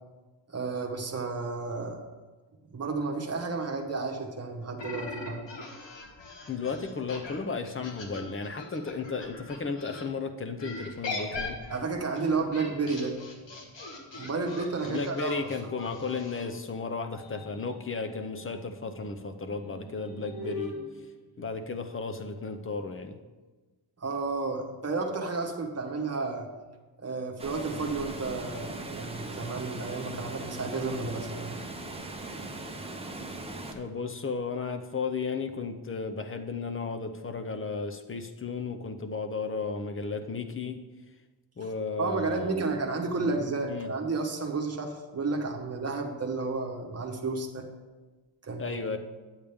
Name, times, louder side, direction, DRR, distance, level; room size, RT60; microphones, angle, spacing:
voice 1, 0.5-2.0 2.7-5.4 11.7-13.2 14.1-15.4 15.8-15.9 24.0-26.5 27.0-31.7 42.0-47.7 48.4-48.8, right 3 dB, 35° right, 1 dB, 1.0 m, -32 dB
sound 1, 4.8-10.0 10.6-16.5, left 3 dB, 70° left, 1.5 m, -40 dB
voice 2, 6.5-11.6 14.9-20.8 21.4-23.2 33.7-40.8 41.6-42.8 43.2-43.4 43.7-43.9 48.6-49.0, left 4 dB, 30° left, 7 dB, 0.6 m, -34 dB
sound 2, 13.3-16.4 16.9-22.1, left 3 dB, 50° left, 1.5 m, -45 dB
Water, 27.4-33.7, right 2 dB, 15° right, 0.7 m, -39 dB
8.8 x 8.3 x 3.5 m, 1.3 s
wide cardioid pair, 150°, 45 cm